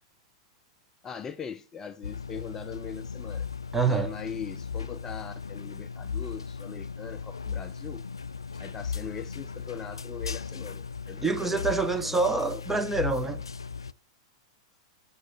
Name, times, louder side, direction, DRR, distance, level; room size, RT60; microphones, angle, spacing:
voice 1, 1.0-3.5 3.8-8.0 8.5-12.2 12.5-12.6, left 7 dB, 20° left, 0.5 m, -41 dB
sound 1, 2.0-13.9, left 5 dB, 80° left, 0.3 m, -37 dB
voice 2, 3.7-4.1 11.2-13.4, right 3 dB, 5° right, 0.9 m, -26 dB
7.2 x 6.3 x 4.0 m
figure-of-eight pair, 95°, 2 cm